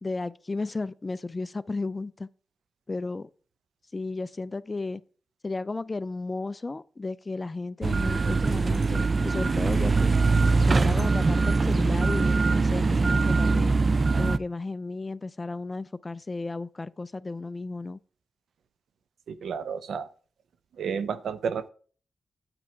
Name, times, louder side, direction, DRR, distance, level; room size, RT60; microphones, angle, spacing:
voice 1, 0.0-2.3 2.9-3.3 3.9-5.0 5.4-10.2 10.7-13.8 14.2-18.0, left 3 dB, 30° left, 0.4 m, -33 dB
sound 1, 7.8-14.4, right 3 dB, 40° right, 0.4 m, -22 dB
voice 2, 19.3-20.1 20.8-21.7, right 6 dB, 85° right, 0.7 m, -31 dB
8.9 x 5.9 x 4.5 m
cardioid pair, 75°, 0 cm